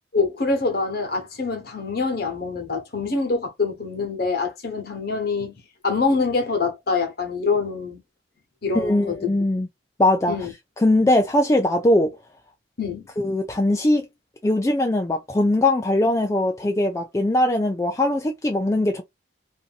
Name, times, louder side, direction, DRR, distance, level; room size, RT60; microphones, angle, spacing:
voice 1, 0.1-5.5 5.8-8.0 8.6-9.3 10.3-10.5 12.8-13.1, left 4 dB, 55° left, 1.0 m, -25 dB
voice 2, 8.7-9.7 10.0-10.3 10.8-12.2 13.2-14.1 14.4-19.0, left 1 dB, 15° left, 0.3 m, -20 dB
2.6 x 2.6 x 2.4 m
head